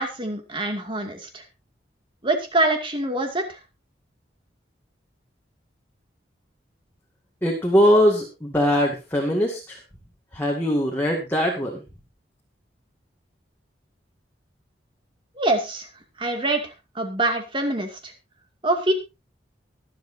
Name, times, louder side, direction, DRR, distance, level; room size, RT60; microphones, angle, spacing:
voice 1, 0.0-1.4 2.2-3.6 15.4-15.9 16.2-18.1 18.6-18.9, right 2 dB, 25° right, 4 dB, 2.3 m, -25 dB
voice 2, 7.4-9.8 10.3-11.8, equal, 10° left, -1 dB, 2.1 m, -21 dB
24.0 x 8.0 x 2.7 m, 0.25 s
head